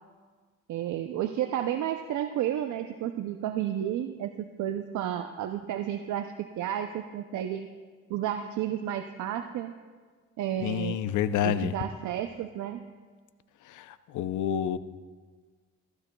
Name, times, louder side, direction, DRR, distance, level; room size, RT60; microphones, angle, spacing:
voice 1, 0.7-7.7 8.1-9.7 10.4-11.0 11.4-12.8, right 11 dB, 75° right, 7 dB, 0.6 m, -32 dB
voice 2, 10.6-11.7 13.7-14.8, left 10 dB, 80° left, 13 dB, 0.6 m, -29 dB
15.5 x 14.5 x 2.3 m, 1.5 s
cardioid pair, 90°, 30 cm